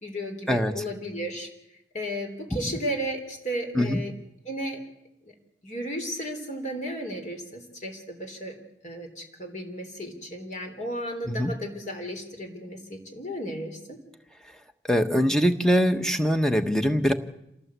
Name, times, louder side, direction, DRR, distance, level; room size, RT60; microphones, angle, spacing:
voice 1, 0.0-1.5 1.9-4.1 4.5-4.8 5.2-5.3 5.6-8.6 8.8-14.0, equal, 40° left, 4 dB, 3.6 m, -34 dB
voice 2, 14.8-17.1, equal, 5° left, 7 dB, 1.3 m, -23 dB
27.5 x 19.0 x 8.3 m, 0.84 s
head